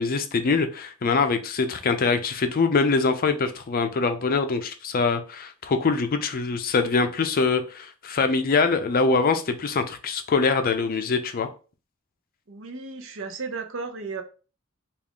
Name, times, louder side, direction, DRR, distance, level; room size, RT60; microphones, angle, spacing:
voice 1, 0.0-11.5, left 4 dB, 45° left, 0.5 m, -23 dB
voice 2, 12.5-14.2, right 4 dB, 65° right, 0.6 m, -34 dB
3.5 x 2.4 x 3.6 m
head